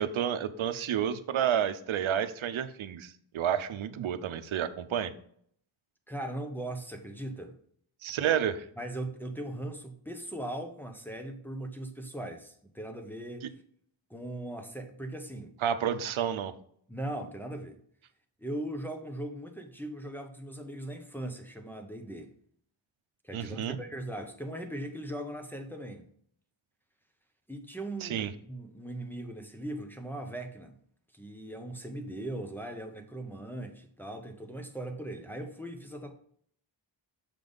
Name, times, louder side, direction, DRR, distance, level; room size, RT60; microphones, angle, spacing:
voice 1, 0.0-5.1 8.0-8.7 15.6-16.5 23.3-23.8 28.0-28.3, right 9 dB, 90° right, 11 dB, 0.7 m, -30 dB
voice 2, 6.1-7.6 8.8-13.5 14.1-15.5 16.9-17.8 18.4-22.3 23.2-26.1 27.5-30.8 31.1-36.1, right 1 dB, 5° left, 3 dB, 0.7 m, -39 dB
6.6 x 5.3 x 3.9 m, 0.63 s
wide cardioid pair, 160°, 47 cm